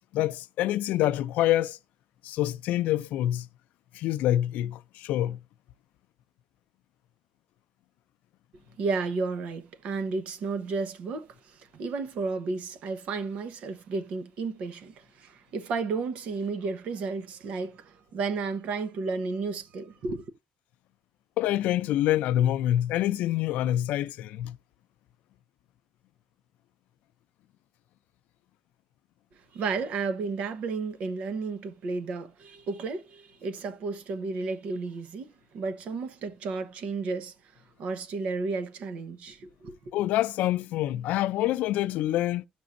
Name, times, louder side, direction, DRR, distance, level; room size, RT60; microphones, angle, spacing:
voice 1, 0.1-1.8 2.2-3.5 3.9-5.4 21.4-24.6 39.9-42.5, left 13 dB, 85° left, 0.5 m, -26 dB
voice 2, 8.8-20.3 29.5-37.3 37.8-39.8, right 4 dB, 55° right, 1.0 m, -32 dB
17.5 x 6.1 x 2.6 m
cardioid pair, 175°, 3 cm